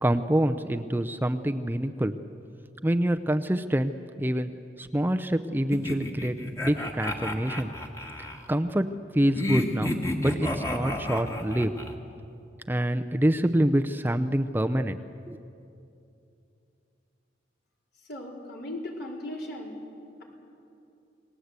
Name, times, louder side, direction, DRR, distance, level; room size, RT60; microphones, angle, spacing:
voice 1, 0.0-2.1 2.8-4.5 4.8-6.4 6.6-7.7 8.5-8.9 9.1-9.9 10.2-11.7 12.7-15.0 15.3-15.4, right 1 dB, 10° right, 7 dB, 0.6 m, -26 dB
sound 1, 5.7-8.4 9.3-11.9, left 1 dB, 15° left, 1.9 m, -31 dB
voice 2, 18.1-19.8, left 1 dB, 60° left, -1 dB, 4.7 m, -37 dB
28.5 x 19.5 x 8.2 m, 2.6 s
head